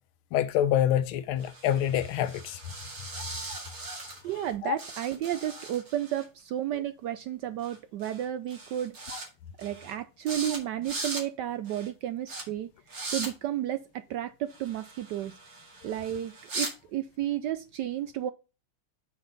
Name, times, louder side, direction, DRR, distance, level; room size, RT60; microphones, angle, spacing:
voice 1, 0.3-2.6 4.6-4.8, left 11 dB, 85° left, 1.5 m, -26 dB
sound 1, 1.4-4.5 4.8-6.3 7.6-7.8 8.0-8.3 8.5-9.3 9.6-9.9 10.3-10.6 10.8-11.2 11.7-11.9 12.3-12.4 12.9-13.3 14.5-16.7, right 3 dB, 45° right, 2.5 m, -39 dB
voice 2, 4.2-9.0 9.6-12.7 13.1-15.3 15.8-18.3, right 11 dB, 80° right, 0.9 m, -32 dB
7.2 x 6.5 x 4.0 m
omnidirectional pair, 2.3 m